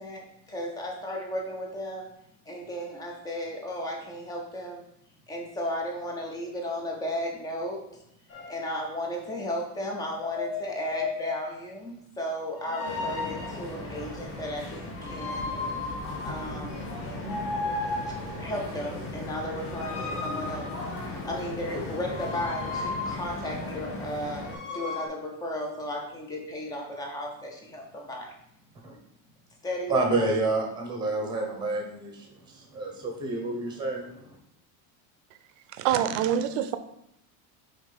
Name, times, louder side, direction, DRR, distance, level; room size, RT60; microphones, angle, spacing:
voice 1, 0.0-2.1 2.5-4.8 5.3-7.9 8.5-15.5 16.2-16.8 18.1-20.7 21.2-28.3 29.6-30.3, left 1 dB, 10° left, 0 dB, 0.3 m, -34 dB
sound 1, 8.3-8.6 10.0-11.6 12.6-13.7 14.9-16.7 17.2-18.4 19.7-21.2 22.0-23.4 24.4-25.1, left 3 dB, 45° left, 1.4 m, -35 dB
sound 2, 12.8-24.5, left 1 dB, 30° left, 1.2 m, -38 dB
sound 3, 16.1-23.6, left 3 dB, 70° left, 1.7 m, -41 dB
voice 2, 29.9-34.3, right 2 dB, 10° right, 2 dB, 0.7 m, -29 dB
voice 3, 35.7-36.8, right 10 dB, 60° right, 11 dB, 0.6 m, -25 dB
5.0 x 3.7 x 5.3 m, 0.75 s
cardioid pair, 175°, 46 cm